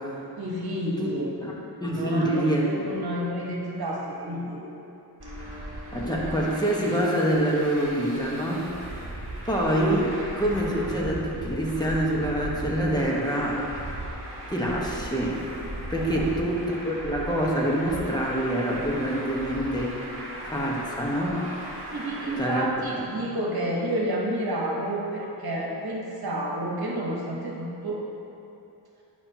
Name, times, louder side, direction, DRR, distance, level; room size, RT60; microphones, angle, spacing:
voice 1, 0.4-1.3 1.9-4.6 15.9-16.2 21.9-28.0, right 1 dB, 60° right, -3 dB, 1.3 m, -30 dB
voice 2, 1.8-3.0 5.9-8.7 9.4-13.6 14.5-15.4 15.9-20.0 20.5-21.4 22.4-22.7, right 1 dB, 10° left, -4 dB, 1.3 m, -26 dB
Traffic noise roadway noise, 5.2-22.4, right 1 dB, 30° right, 1.6 m, -37 dB
9.5 x 5.8 x 2.9 m, 2.9 s
wide cardioid pair, 65°, 41 cm